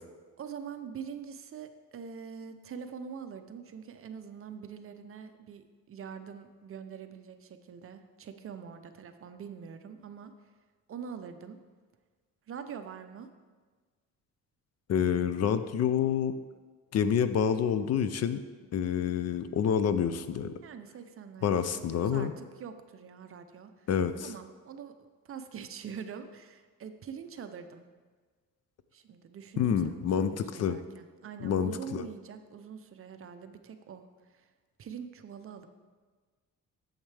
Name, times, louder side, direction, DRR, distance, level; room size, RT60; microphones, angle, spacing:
voice 1, 0.4-10.3 10.9-11.6 12.5-13.3 20.6-23.9 24.2-27.8 28.9-34.5 34.8-35.7, right 7 dB, 45° right, 8 dB, 0.5 m, -44 dB
voice 2, 14.9-16.3 16.9-18.4 18.7-20.5 21.4-22.3 23.9-24.3 29.6-30.8 31.4-32.0, left 8 dB, 50° left, 11 dB, 0.4 m, -28 dB
8.8 x 7.2 x 3.3 m, 1.4 s
cardioid pair, 150°, 32 cm